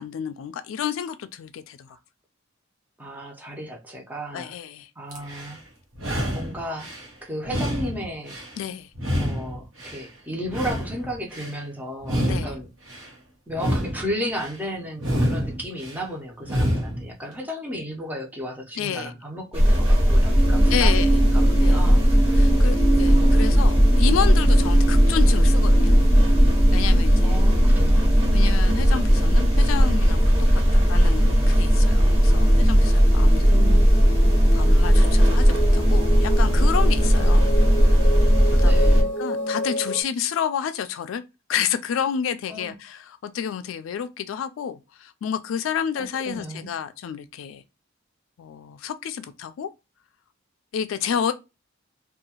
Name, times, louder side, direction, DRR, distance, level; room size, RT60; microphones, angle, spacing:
voice 1, 0.0-1.9 4.3-4.9 8.6-8.9 12.2-12.5 18.8-19.1 20.7-21.1 21.6-21.8 22.3-25.9 26.7-27.4 28.3-30.3 30.7-33.6 34.5-37.4 37.9-38.0 38.5-41.2 41.5-47.6 48.4-49.7 50.7-51.3, left 8 dB, 75° left, 0.3 m, -30 dB
voice 2, 3.0-4.6 5.0-5.6 6.3-6.9 7.2-8.4 9.2-12.7 13.5-22.3 23.1-23.6 27.2-28.4 33.3-33.9 37.2-37.3 38.6-39.1 42.5-42.8 46.0-46.7, equal, 10° right, 0.6 m, -34 dB
sound 1, 5.1-5.6 5.9-7.1 7.4-8.6 8.9-10.1 10.4-11.6 12.0-13.1 13.5-14.6 15.0-16.0 16.4-17.1, equal, 75° right, 0.9 m, -28 dB
sound 2, 19.5-39.0, equal, 30° right, 1.0 m, -17 dB
sound 3, 20.3-40.0, right 1 dB, 45° left, 0.6 m, -30 dB
2.7 x 2.3 x 2.8 m
head